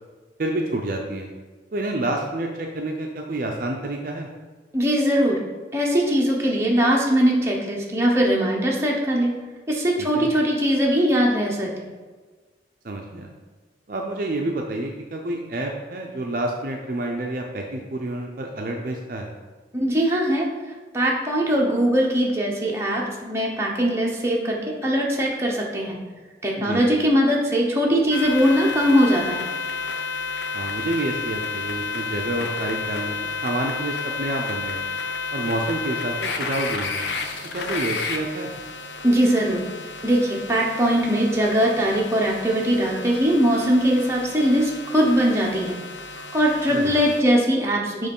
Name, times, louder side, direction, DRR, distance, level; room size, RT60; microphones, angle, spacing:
voice 1, 0.4-1.3 1.7-4.3 10.0-10.3 12.8-13.3 13.9-19.3 26.7-26.8 30.5-34.8 35.3-37.0 37.5-38.5 46.7-47.0, right 2 dB, 50° right, 1 dB, 0.5 m, -28 dB
voice 2, 4.7-5.4 5.7-9.3 9.7-11.9 19.7-20.5 20.9-26.0 26.4-29.5 39.0-39.6 40.0-45.8 46.3-48.1, equal, 15° right, -3 dB, 0.9 m, -21 dB
sound 1, 28.1-47.2, left 4 dB, 80° left, 0.6 m, -31 dB
6.5 x 3.1 x 5.3 m, 1.4 s
head